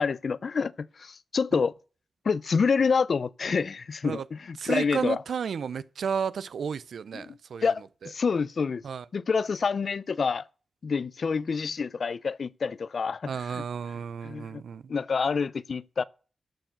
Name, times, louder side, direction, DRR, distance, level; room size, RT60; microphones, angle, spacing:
voice 1, 0.0-1.7 2.2-5.2 7.1-8.8 9.1-10.4 10.8-13.6 14.2-14.6 14.9-16.0, left 5 dB, 70° left, 0.4 m, -28 dB
voice 2, 4.6-7.7 8.0-8.1 8.8-9.0 13.3-14.8, right 6 dB, 90° right, 0.5 m, -32 dB
13.0 x 4.6 x 7.8 m
cardioid pair, 65°, 0 cm